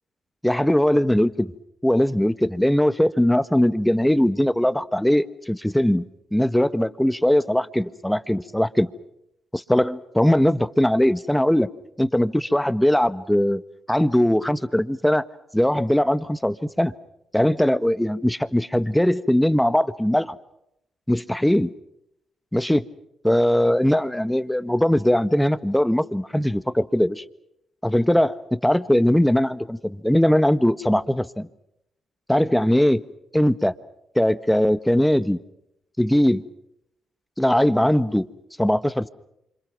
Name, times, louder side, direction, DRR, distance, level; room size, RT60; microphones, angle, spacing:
voice 1, 0.4-1.5 1.8-6.0 6.3-8.9 9.5-11.7 12.0-13.6 13.9-15.3 15.5-16.9 17.3-20.4 21.1-21.7 22.5-22.8 23.2-27.2 27.8-31.5 32.3-33.0 33.3-33.7 34.1-35.4 36.0-36.4 37.4-38.3 38.6-39.1, left 1 dB, 5° left, 14 dB, 1.4 m, -20 dB
28.0 x 26.0 x 6.0 m, 0.79 s
hypercardioid pair, 45°, 0 cm